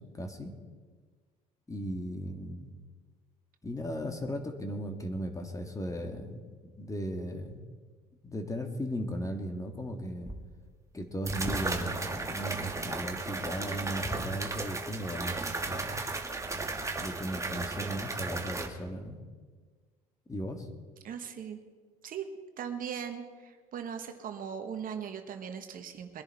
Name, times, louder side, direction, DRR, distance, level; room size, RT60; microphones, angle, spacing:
voice 1, 0.1-0.5 1.7-2.7 3.6-7.6 8.2-10.3 10.9-16.0 17.0-19.2 20.3-20.7, equal, 15° left, 5 dB, 2.0 m, -37 dB
sound 1, 10.3-10.4 11.3-18.7, right 3 dB, 15° right, 1.8 m, -35 dB
voice 2, 21.0-21.6 22.0-22.3 22.6-26.2, right 8 dB, 50° right, 6 dB, 1.3 m, -39 dB
22.0 x 10.5 x 4.4 m, 1.5 s
hypercardioid pair, 70°, 18 cm